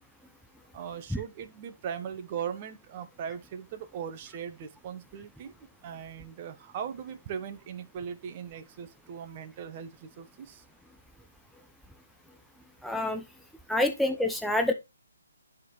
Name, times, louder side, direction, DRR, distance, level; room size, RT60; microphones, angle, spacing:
voice 1, 0.7-5.6 5.8-10.6 13.7-13.8, right 8 dB, 30° right, 0.9 m, -39 dB
voice 2, 12.8-13.2 13.7-14.7, left 1 dB, ahead, 0.6 m, -27 dB
10.5 x 3.7 x 3.1 m
figure-of-eight pair, 150°, 0 cm